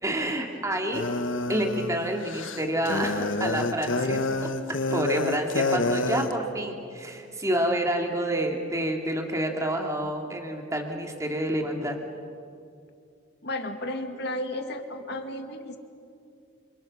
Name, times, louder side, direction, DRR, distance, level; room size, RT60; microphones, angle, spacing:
voice 1, 0.0-1.2 1.5-4.2 4.9-12.0, right 1 dB, 15° right, 2 dB, 2.8 m, -28 dB
sound 1, 0.9-6.3, left 2 dB, 85° left, 1.5 m, -28 dB
voice 2, 13.4-15.8, left 1 dB, 60° left, 5 dB, 2.3 m, -33 dB
30.0 x 28.0 x 6.4 m, 2.4 s
head